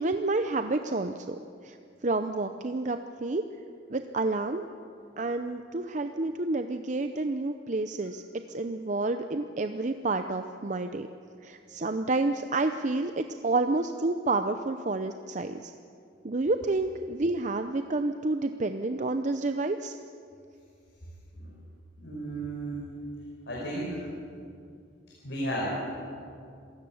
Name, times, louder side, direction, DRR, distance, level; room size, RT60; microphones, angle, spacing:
voice 1, 0.0-1.4 1.6-1.8 2.0-3.4 3.9-4.6 5.2-8.2 8.5-11.1 11.4-15.7 16.2-19.9, right 2 dB, 40° right, 8 dB, 0.6 m, -29 dB
voice 2, 22.0-23.0 23.5-24.0 25.2-25.8, right 1 dB, 70° left, -4 dB, 5.0 m, -33 dB
27.0 x 16.5 x 7.1 m, 2.4 s
head